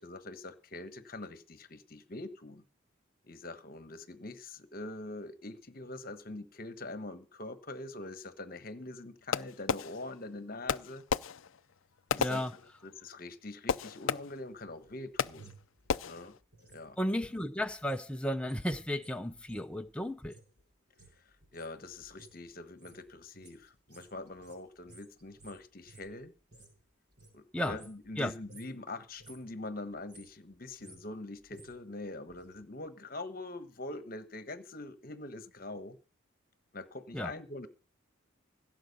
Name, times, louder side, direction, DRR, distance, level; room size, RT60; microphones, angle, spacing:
voice 1, 0.0-2.6 3.2-11.0 12.1-15.5 16.0-16.3 16.7-17.0 21.2-21.3 21.5-26.3 27.3-36.0 36.7-37.7, left 2 dB, 45° left, 1.2 m, -44 dB
Fireworks, 9.3-10.3 10.7-13.1 13.7-14.6 15.2-15.6 15.9-16.4, left 6 dB, 75° left, 0.5 m, -34 dB
voice 2, 12.2-12.5 17.0-20.4 27.5-27.8 28.2-28.3 37.1-37.3, left 1 dB, 5° left, 0.7 m, -34 dB
sound 1, 14.7-18.1 18.3-26.8 27.1-28.2 28.4-28.8 29.1-29.5 29.9-32.6 32.9-33.0, right 2 dB, 50° right, 6.3 m, -58 dB
17.0 x 7.7 x 5.4 m
head